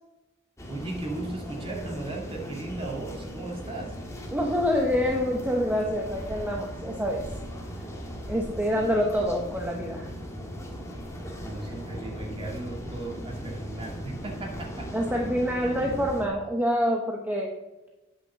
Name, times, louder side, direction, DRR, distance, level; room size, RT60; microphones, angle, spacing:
sound 1, 0.6-16.3, equal, 15° left, 1.5 m, -38 dB
voice 1, 0.7-4.0 11.4-14.9, right 2 dB, 25° right, -1 dB, 2.0 m, -36 dB
voice 2, 4.3-7.2 8.3-10.1 14.9-17.6, equal, 10° right, 0 dB, 0.8 m, -26 dB
8.3 x 6.2 x 6.9 m, 1.1 s
head